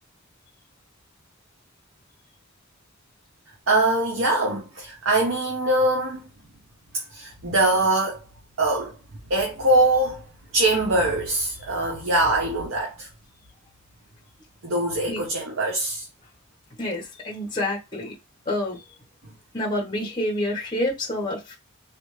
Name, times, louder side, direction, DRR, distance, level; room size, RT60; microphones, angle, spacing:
voice 1, 3.7-6.2 7.1-8.2 8.6-9.0 9.3-10.3 10.5-13.1 14.6-16.1, right 2 dB, 70° right, 0.9 m, -22 dB
voice 2, 16.8-18.1 18.5-18.8 19.5-21.6, left 1 dB, 20° left, 1.2 m, -28 dB
3.4 x 2.5 x 3.1 m
head